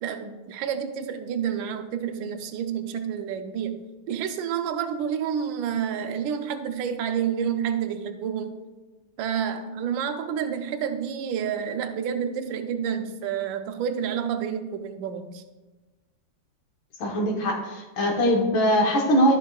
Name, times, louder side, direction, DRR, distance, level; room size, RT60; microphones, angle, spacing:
voice 1, 0.0-8.6 9.2-15.4, right 8 dB, 75° right, 7 dB, 1.3 m, -29 dB
voice 2, 17.0-19.4, equal, 70° left, 0 dB, 2.0 m, -22 dB
12.5 x 5.6 x 2.3 m, 1.2 s
omnidirectional pair, 2.2 m